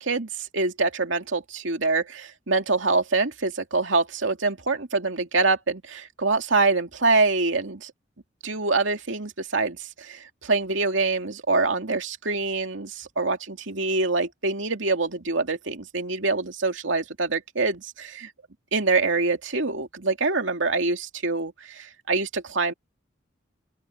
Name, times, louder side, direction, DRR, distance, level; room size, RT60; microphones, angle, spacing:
voice 1, 0.1-7.9 8.4-18.3 18.7-22.7, right 3 dB, 85° right, 2.6 m, -25 dB
open air
head